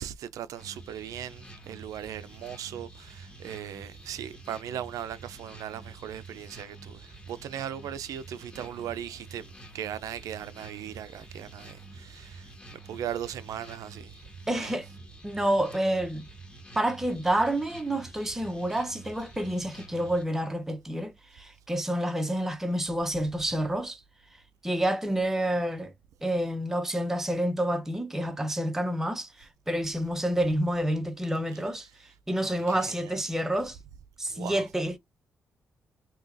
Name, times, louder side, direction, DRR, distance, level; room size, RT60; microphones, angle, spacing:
voice 1, 0.0-9.5 9.7-14.2 14.5-14.7 32.4-33.1 34.3-34.7, right 10 dB, 90° right, 0.4 m, -38 dB
sound 1, 0.6-20.2, right 2 dB, 15° left, 1.2 m, -48 dB
voice 2, 14.5-14.9 15.2-16.3 16.7-24.0 24.6-25.9 26.2-31.9 32.3-33.8 34.2-35.0, right 1 dB, 5° right, 0.6 m, -28 dB
3.9 x 2.8 x 2.5 m
wide cardioid pair, 175°, 6 cm